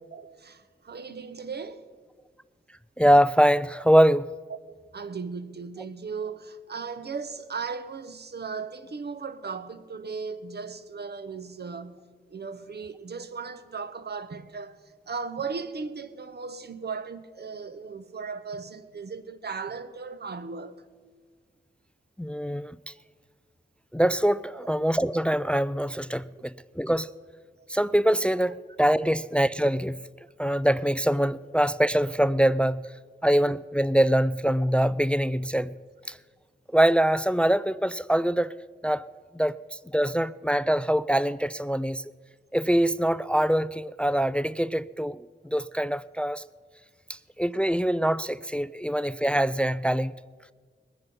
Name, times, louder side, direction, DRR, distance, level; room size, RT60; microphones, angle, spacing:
voice 1, 0.1-1.9 4.7-20.8 24.5-24.6 27.6-27.7, right 5 dB, 60° right, 0.9 m, -37 dB
voice 2, 3.0-4.3 22.2-22.8 23.9-27.1 27.7-30.0 30.4-32.9 33.2-35.7 36.1-36.2 36.7-38.5 38.8-39.1 39.3-39.5 39.9-42.0 42.5-46.4 47.4-50.1, equal, 5° left, 0.3 m, -23 dB
20.5 x 9.8 x 5.4 m
cardioid pair, 55°, 19 cm